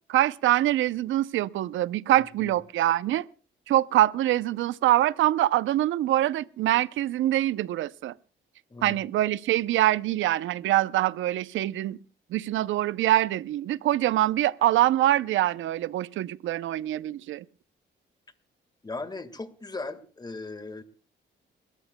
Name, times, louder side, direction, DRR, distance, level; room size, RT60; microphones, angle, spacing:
voice 1, 0.1-3.3 3.7-8.1 8.8-12.0 12.3-17.4, right 14 dB, 75° right, 0.6 m, -24 dB
voice 2, 18.8-20.8, left 3 dB, 20° left, 1.6 m, -37 dB
29.5 x 14.0 x 2.2 m
cardioid pair, 90°, 20 cm